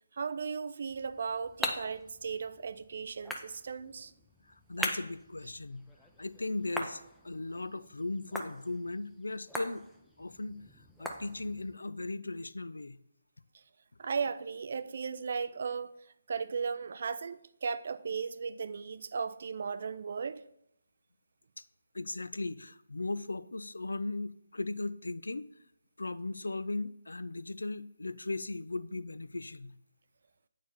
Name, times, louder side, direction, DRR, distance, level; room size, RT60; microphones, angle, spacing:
voice 1, 0.1-4.1 14.0-15.9 16.3-20.4, right 5 dB, 50° right, 0.4 m, -36 dB
sound 1, 0.9-11.8, left 1 dB, ahead, 0.5 m, -42 dB
voice 2, 4.5-5.9 6.2-9.8 10.2-10.6 11.0-13.0 21.6-21.7 21.9-25.5 26.0-29.7, left 2 dB, 70° left, 0.4 m, -37 dB
8.4 x 4.5 x 4.2 m
figure-of-eight pair, 145°, 0 cm